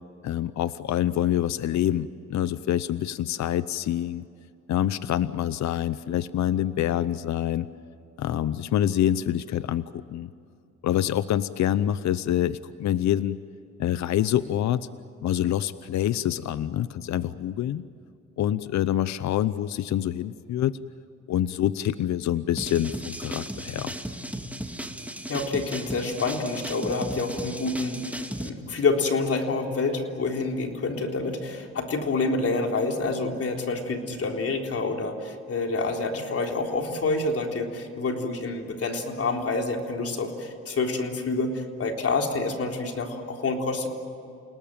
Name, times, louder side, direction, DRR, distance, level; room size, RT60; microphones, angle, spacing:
voice 1, 0.2-4.2 4.7-7.7 8.2-10.3 10.8-13.4 13.8-14.9 15.2-17.8 18.4-20.8 21.3-23.9, left 11 dB, 65° left, 15 dB, 0.8 m, -26 dB
sound 1, 22.6-28.5, right 1 dB, 5° right, 2.1 m, -36 dB
voice 2, 25.3-28.1 28.4-43.9, left 3 dB, 50° left, 2 dB, 3.9 m, -27 dB
29.5 x 19.0 x 9.1 m, 2.6 s
cardioid pair, 90°, 30 cm